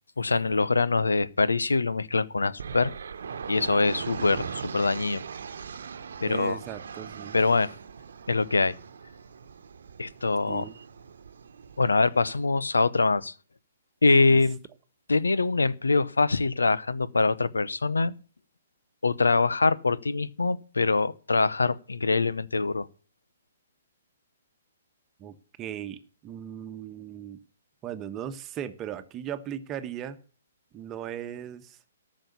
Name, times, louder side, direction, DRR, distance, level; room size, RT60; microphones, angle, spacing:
voice 1, 0.2-2.9 3.5-5.2 6.2-6.6 7.3-7.7 8.3-8.8 10.0-10.7 11.8-13.3 14.0-14.6 15.1-18.1 19.0-22.9, left 3 dB, 85° left, 0.9 m, -24 dB
sound 1, 2.6-12.5, right 6 dB, 70° right, 1.1 m, -40 dB
voice 2, 6.2-7.4 10.5-10.7 14.3-14.4 25.2-27.4 27.8-30.2 30.7-31.8, right 10 dB, 25° right, 1.2 m, -38 dB
14.0 x 6.4 x 8.3 m
figure-of-eight pair, 130°, 0 cm